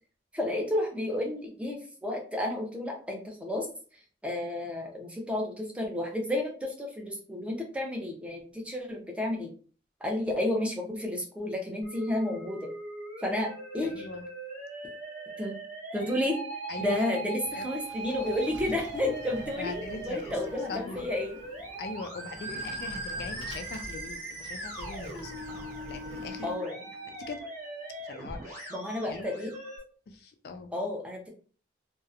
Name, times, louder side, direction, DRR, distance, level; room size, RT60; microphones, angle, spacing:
voice 1, 0.3-3.7 4.2-9.5 10.0-12.7 13.2-14.1 15.4-15.6 15.9-16.4 16.8-21.4 26.4-26.8 28.7-29.5 30.7-31.3, left 1 dB, 5° right, 0 dB, 0.5 m, -31 dB
Musical instrument, 11.8-29.8, right 2 dB, 40° right, 1.1 m, -40 dB
voice 2, 13.8-14.3 16.7-17.1 17.6-17.7 19.6-20.4 20.7-21.1 21.8-25.4 25.9-26.5 27.0-27.4 28.0-28.7 29.0-29.5 30.1-30.7, left 4 dB, 60° left, 6 dB, 0.3 m, -41 dB
Sliding door, 17.1-26.5, right 1 dB, 80° right, 0.6 m, -48 dB
2.7 x 2.0 x 2.4 m, 0.39 s
head